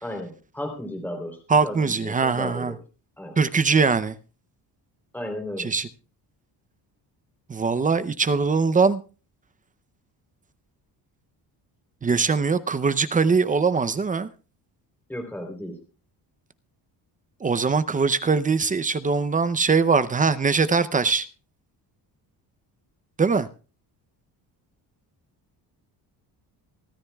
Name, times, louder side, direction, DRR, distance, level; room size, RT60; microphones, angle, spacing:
voice 1, 0.0-1.4 1.6-2.8 3.2-3.4 5.1-5.7 15.1-15.8, left 1 dB, 5° left, 3.4 m, -34 dB
voice 2, 1.5-2.7 3.4-4.2 5.6-5.9 7.5-9.0 12.0-14.3 17.4-21.3 23.2-23.5, right 4 dB, 20° right, 0.6 m, -22 dB
24.5 x 13.0 x 2.3 m
cardioid pair, 160°, 40 cm